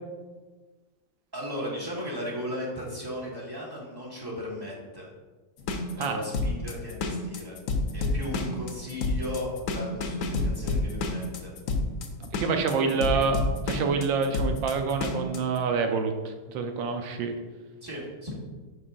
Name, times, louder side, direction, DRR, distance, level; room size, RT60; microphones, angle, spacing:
voice 1, 1.3-5.0 5.9-7.5 7.9-11.5 12.8-13.0 17.8-18.3, left 1 dB, 15° right, -4 dB, 1.3 m, -36 dB
sound 1, 5.6-15.4, left 3 dB, 60° left, 0.9 m, -29 dB
voice 2, 12.2-17.3, right 5 dB, 85° right, 5 dB, 1.4 m, -27 dB
9.4 x 5.5 x 2.6 m, 1.3 s
omnidirectional pair, 2.0 m